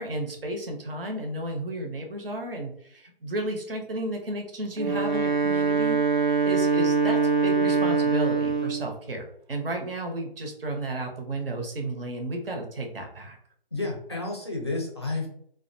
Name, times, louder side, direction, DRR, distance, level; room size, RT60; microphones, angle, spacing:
voice 1, 0.0-13.4, right 1 dB, 70° right, 3 dB, 0.8 m, -33 dB
Wind instrument woodwind instrument, 4.7-8.9, right 5 dB, 55° right, 0.4 m, -23 dB
voice 2, 13.7-15.3, left 2 dB, 30° left, -1 dB, 0.4 m, -31 dB
2.4 x 2.1 x 2.6 m, 0.67 s
figure-of-eight pair, 165°, 29 cm